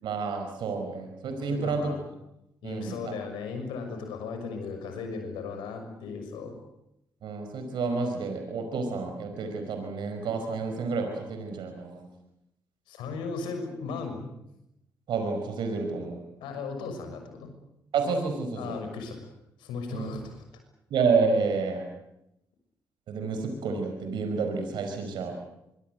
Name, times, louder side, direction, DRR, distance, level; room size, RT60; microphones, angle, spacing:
voice 1, 0.0-1.8 2.6-3.1 7.2-12.1 15.1-16.2 17.9-18.7 19.9-20.1 20.9-21.9 23.1-25.3, right 4 dB, 75° right, 5 dB, 5.1 m, -29 dB
voice 2, 1.5-2.1 2.6-6.5 12.9-14.3 16.4-17.5 18.5-19.3 19.6-20.4, left 4 dB, 85° left, 6 dB, 6.4 m, -36 dB
25.0 x 24.0 x 8.0 m, 0.86 s
supercardioid pair, 50°, 8 cm